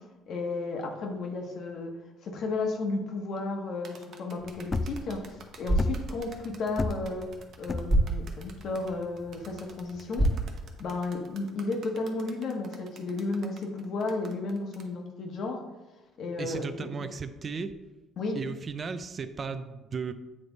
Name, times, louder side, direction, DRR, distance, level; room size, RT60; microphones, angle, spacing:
voice 1, 0.3-1.9 2.2-5.2 5.6-7.3 7.6-10.3 10.8-15.6 16.2-16.9 18.2-18.4, left 3 dB, 60° left, 2 dB, 1.3 m, -33 dB
sound 1, 3.8-14.9, right 5 dB, 55° right, 0.9 m, -51 dB
sound 2, 4.4-10.4, left 3 dB, 30° left, 0.4 m, -33 dB
sound 3, 5.5-11.5, right 1 dB, 20° right, 1.2 m, -32 dB
voice 2, 16.4-17.8 18.3-20.1, right 5 dB, 40° right, 10 dB, 0.4 m, -35 dB
8.5 x 3.3 x 4.0 m, 1.1 s
supercardioid pair, 85°, 0 cm